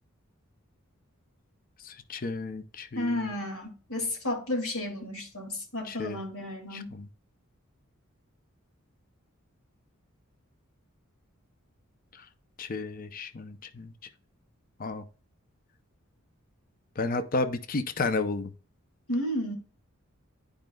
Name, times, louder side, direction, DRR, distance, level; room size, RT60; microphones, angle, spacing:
voice 1, 1.8-3.3 5.9-6.2 12.6-13.9 14.8-15.0 17.0-18.5, left 3 dB, 40° left, 0.6 m, -32 dB
voice 2, 3.0-6.9 19.1-19.5, left 1 dB, 75° left, 2.3 m, -32 dB
11.0 x 5.1 x 2.3 m
head